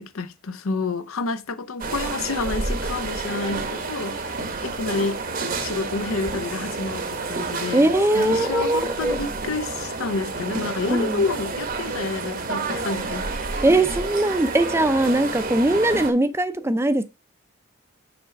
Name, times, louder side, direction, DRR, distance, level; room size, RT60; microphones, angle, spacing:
voice 1, 0.0-5.2 5.6-13.3, left 3 dB, 80° left, 0.6 m, -29 dB
sound 1, 1.8-16.1, right 3 dB, 40° right, 0.9 m, -29 dB
voice 2, 7.7-9.2 10.9-11.2 13.6-17.0, right 1 dB, 10° right, 0.5 m, -21 dB
6.0 x 4.3 x 5.1 m
head